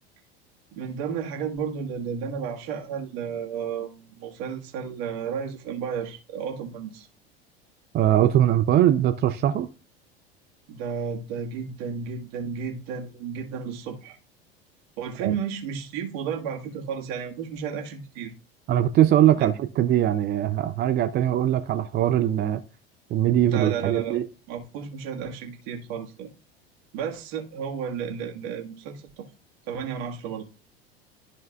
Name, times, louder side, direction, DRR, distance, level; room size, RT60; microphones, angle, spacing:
voice 1, 0.7-7.1 10.7-14.2 15.0-18.3 19.4-19.5 23.4-24.2 24.5-26.3 26.9-29.3 29.7-30.4, right 7 dB, 55° right, 1.8 m, -32 dB
voice 2, 7.9-9.7 15.2-15.3 18.7-22.6 23.1-24.2, right 11 dB, 35° right, 0.5 m, -21 dB
13.0 x 4.5 x 2.4 m
figure-of-eight pair, 75°, 31 cm